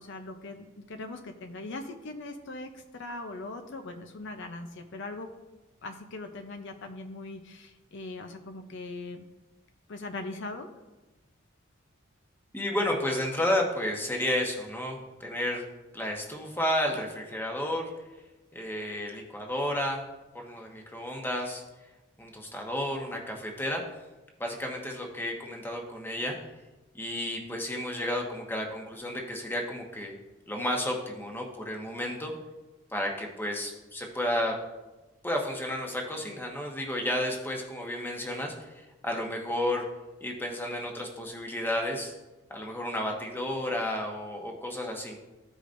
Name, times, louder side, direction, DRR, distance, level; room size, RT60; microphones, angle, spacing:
voice 1, 0.0-5.3 5.8-9.2 9.9-10.7, left 2 dB, 60° left, 5 dB, 0.6 m, -40 dB
voice 2, 12.5-15.6 15.9-17.9 18.5-20.0 20.3-21.6 22.2-23.8 24.4-26.4 26.9-30.1 30.5-32.3 32.9-34.6 35.2-39.9 40.2-42.2 42.5-45.2, left 1 dB, 10° left, 1 dB, 1.1 m, -32 dB
14.5 x 5.0 x 2.6 m, 1.1 s
head